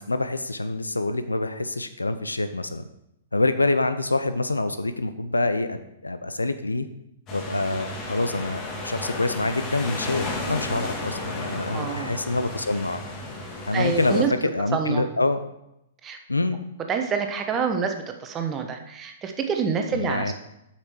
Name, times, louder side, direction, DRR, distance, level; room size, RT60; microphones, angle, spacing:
voice 1, 0.0-2.8 3.3-6.9 7.3-13.0 13.7-15.4 16.3-16.6 19.9-20.3, left 2 dB, 90° left, 11 dB, 0.6 m, -26 dB
sound 1, 7.3-14.2, left 2 dB, 30° left, 2.2 m, -33 dB
voice 2, 11.7-12.1 13.7-14.3 14.7-15.1 16.0-16.2 16.9-20.3, right 6 dB, 20° right, 5 dB, 1.0 m, -27 dB
7.9 x 5.9 x 4.5 m, 0.84 s
figure-of-eight pair, 115°, 0 cm